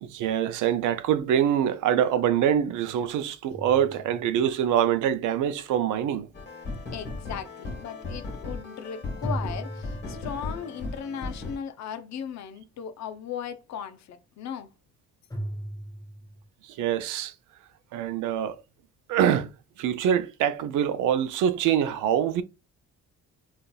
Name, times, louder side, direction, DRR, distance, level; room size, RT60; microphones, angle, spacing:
voice 1, 0.0-6.3 16.7-17.3 17.9-18.6 19.1-19.5 19.8-22.4, right 9 dB, 80° right, 0.5 m, -24 dB
sound 1, 3.5-4.7 9.2-10.8 15.3-16.4, right 1 dB, 10° left, 0.7 m, -36 dB
sound 2, 6.3-11.6, left 3 dB, 35° left, 1.3 m, -37 dB
voice 2, 6.9-14.7, left 8 dB, 65° left, 0.6 m, -37 dB
3.9 x 2.5 x 2.3 m
cardioid pair, 90°, 30 cm